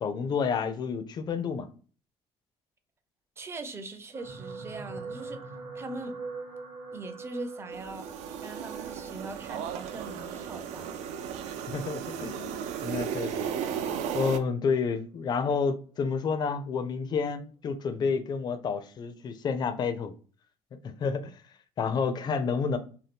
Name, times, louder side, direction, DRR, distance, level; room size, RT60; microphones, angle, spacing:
voice 1, 0.0-1.7 11.7-13.5 14.1-20.1 20.8-21.4 21.8-22.8, left 5 dB, 40° left, 0.4 m, -30 dB
voice 2, 3.4-5.4 5.7-6.2 6.9-8.1 8.4-10.9, right 2 dB, 20° right, 0.4 m, -41 dB
sound 1, 4.1-12.6 13.4-13.6 13.9-14.0, right 3 dB, 65° right, 0.9 m, -43 dB
sound 2, 7.7-14.4, right 8 dB, 80° right, 0.4 m, -35 dB
2.7 x 2.2 x 3.4 m
cardioid pair, 125°, 12 cm